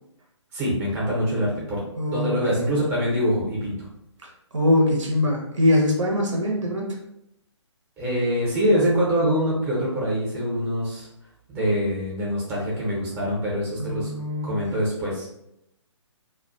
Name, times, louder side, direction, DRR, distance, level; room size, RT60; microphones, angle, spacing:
voice 1, 0.5-1.8 2.1-3.8 8.0-11.1 11.5-14.1 14.4-15.3, equal, 15° right, -6 dB, 0.7 m, -24 dB
voice 2, 2.0-2.4 4.5-7.0 13.8-14.8, left 1 dB, 75° right, 0 dB, 0.8 m, -23 dB
2.3 x 2.1 x 2.4 m, 0.81 s
figure-of-eight pair, 140°, 16 cm